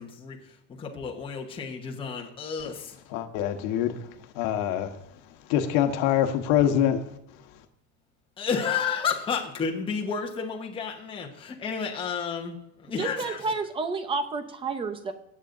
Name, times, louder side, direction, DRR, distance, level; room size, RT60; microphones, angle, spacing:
voice 1, 0.0-3.0 8.4-13.5, left 6 dB, 15° left, 1.1 m, -31 dB
voice 2, 3.1-4.0 4.3-5.0 5.5-7.0, left 10 dB, 65° left, 1.3 m, -24 dB
voice 3, 13.0-15.1, right 4 dB, 15° right, 0.6 m, -30 dB
18.0 x 8.5 x 2.6 m
cardioid pair, 175°, 38 cm